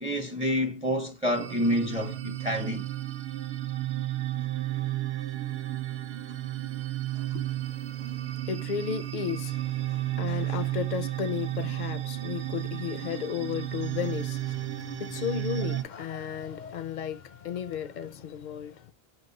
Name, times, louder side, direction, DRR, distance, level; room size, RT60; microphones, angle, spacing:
voice 1, 0.0-2.9, equal, 10° right, 0.5 m, -28 dB
sound 1, 1.3-15.8, right 14 dB, 75° right, 0.8 m, -33 dB
voice 2, 7.3-18.9, left 8 dB, 60° left, 0.6 m, -34 dB
4.8 x 2.3 x 3.8 m
omnidirectional pair, 1.1 m